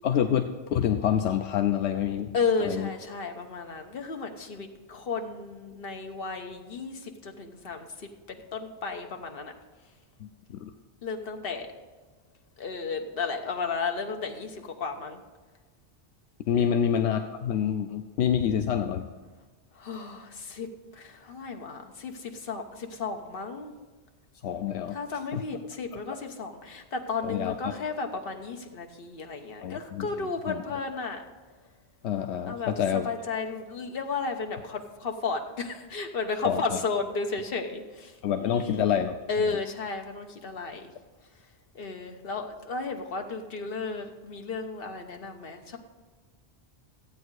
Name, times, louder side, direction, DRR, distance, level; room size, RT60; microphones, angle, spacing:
voice 1, 0.0-2.3 2.6-2.9 10.2-10.3 10.6-10.7 16.5-19.1 24.4-25.0 25.3-25.4 25.9-26.0 27.2-27.7 29.6-30.6 32.0-33.1 36.4-36.8 38.2-39.2 39.5-39.6, left 9 dB, 80° left, 6 dB, 0.9 m, -27 dB
voice 2, 2.3-9.5 11.0-11.7 12.6-15.2 16.5-16.9 19.7-20.7 20.9-23.7 24.9-31.2 32.4-38.1 38.4-38.9 39.3-40.9 41.7-45.8, left 4 dB, 60° left, 4 dB, 1.3 m, -33 dB
14.5 x 8.6 x 4.8 m, 1.3 s
omnidirectional pair, 1.1 m